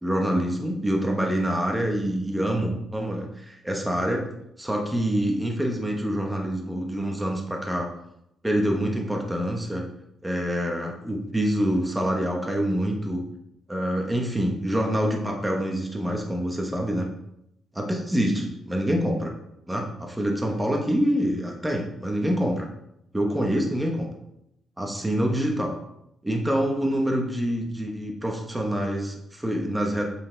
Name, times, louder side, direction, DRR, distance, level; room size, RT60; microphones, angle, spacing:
voice 1, 0.0-4.3 4.6-7.9 8.4-9.9 10.2-13.2 13.7-17.1 17.8-19.3 19.7-22.7 23.1-24.1 24.8-25.8 26.2-30.0, equal, 5° right, 1 dB, 1.2 m, -26 dB
8.6 x 8.4 x 3.4 m, 0.79 s
cardioid pair, 155°, 0 cm